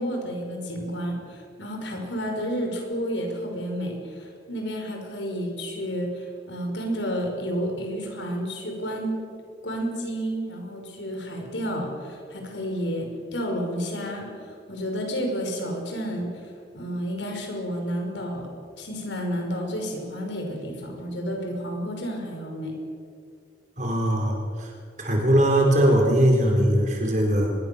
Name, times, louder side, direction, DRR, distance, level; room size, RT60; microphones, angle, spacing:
voice 1, 0.0-9.2 9.6-18.5 18.8-22.7, equal, 85° left, 2 dB, 5.8 m, -31 dB
voice 2, 23.8-24.7 25.0-27.5, right 1 dB, 40° right, 1 dB, 4.9 m, -20 dB
24.0 x 22.0 x 7.2 m, 2.4 s
head